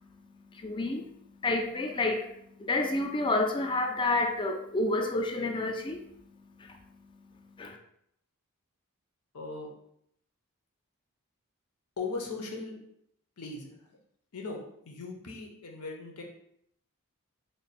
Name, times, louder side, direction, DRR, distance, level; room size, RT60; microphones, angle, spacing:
voice 1, 0.5-1.1 1.4-6.0 6.6-6.8 7.6-7.8, left 2 dB, 20° left, 4 dB, 0.4 m, -29 dB
voice 2, 9.3-9.7 12.0-12.8 13.4-13.8 14.3-16.2, left 3 dB, 90° left, 1 dB, 0.8 m, -38 dB
3.3 x 2.2 x 4.0 m, 0.72 s
head